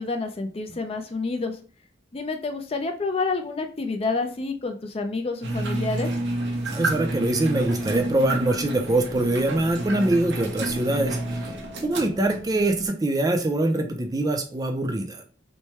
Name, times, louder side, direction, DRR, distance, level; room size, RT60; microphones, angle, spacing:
voice 1, 0.0-1.6 2.1-6.1, left 3 dB, 35° left, 5 dB, 0.5 m, -28 dB
sound 1, 5.4-12.9, right 1 dB, 90° right, 0.7 m, -30 dB
voice 2, 6.7-11.5 11.8-15.2, right 2 dB, 20° right, 5 dB, 0.4 m, -24 dB
3.1 x 2.2 x 4.2 m, 0.41 s
head